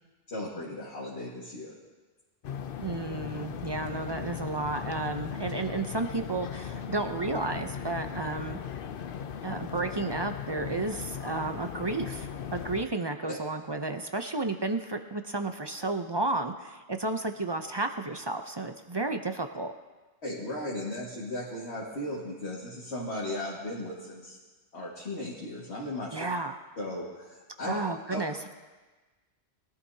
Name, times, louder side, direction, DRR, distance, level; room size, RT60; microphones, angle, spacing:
voice 1, 0.3-1.7 13.3-13.4 20.2-24.4 24.7-26.1 26.8-27.8 28.1-28.2, left 1 dB, 75° left, -6 dB, 2.2 m, -36 dB
sound 1, 2.4-12.8, left 8 dB, 60° left, 0.8 m, -38 dB
voice 2, 2.8-8.6 9.4-19.7 26.1-26.6 27.6-28.5, right 3 dB, 30° right, 6 dB, 0.5 m, -32 dB
21.0 x 12.5 x 2.8 m, 1.3 s
omnidirectional pair, 1.1 m